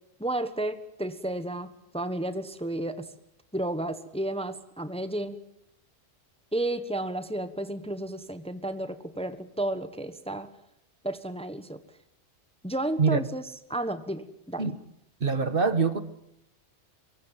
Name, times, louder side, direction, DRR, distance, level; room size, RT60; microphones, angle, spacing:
voice 1, 0.2-1.7 1.9-3.1 3.5-5.3 6.5-10.5 11.0-11.8 12.6-13.4 13.7-14.7, right 1 dB, 5° left, 1.2 m, -32 dB
voice 2, 15.2-16.0, right 5 dB, 50° right, 1.5 m, -24 dB
24.0 x 23.5 x 7.5 m
omnidirectional pair, 1.2 m